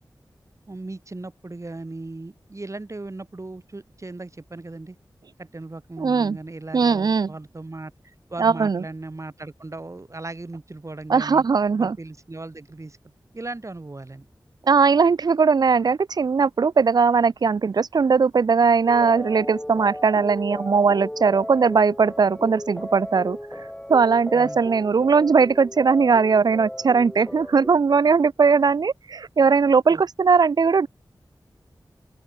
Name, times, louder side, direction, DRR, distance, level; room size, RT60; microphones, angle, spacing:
voice 1, 0.7-5.0 5.4-11.4 11.8-13.0 13.3-14.3 24.3-24.6 29.9-30.0, right 2 dB, 40° right, 2.3 m, -37 dB
voice 2, 6.0-6.4 6.7-7.3 8.4-8.8 11.1-12.0 14.7-23.4 23.9-30.9, right 5 dB, 60° right, 0.4 m, -19 dB
sound 1, 18.8-27.7, left 1 dB, 5° left, 0.6 m, -35 dB
open air
wide cardioid pair, 50°, 8 cm